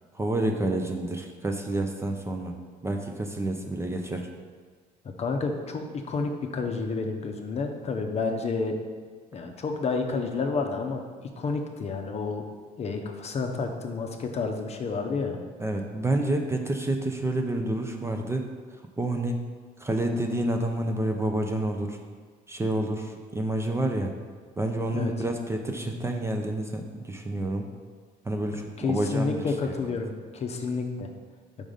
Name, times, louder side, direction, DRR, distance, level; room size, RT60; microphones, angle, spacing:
voice 1, 0.1-2.6 2.8-4.3 15.6-18.4 19.0-19.4 19.8-22.0 22.5-24.1 24.6-27.7 28.3-29.8, right 1 dB, 15° right, 3 dB, 0.5 m, -29 dB
voice 2, 5.0-8.8 9.3-12.4 12.8-15.4 24.9-25.1 28.5-31.1, left 4 dB, 40° left, 4 dB, 0.7 m, -30 dB
5.3 x 3.8 x 5.0 m, 1.5 s
cardioid pair, 110°, 17 cm